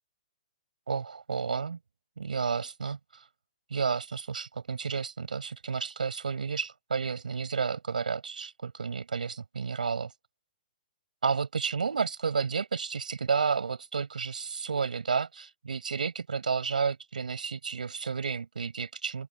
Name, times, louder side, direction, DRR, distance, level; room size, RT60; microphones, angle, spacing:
voice 1, 0.9-1.8 2.2-3.2 3.7-10.1 11.2-19.3, right 5 dB, 85° right, 5.6 m, -31 dB
open air
hypercardioid pair, 135°, 4 cm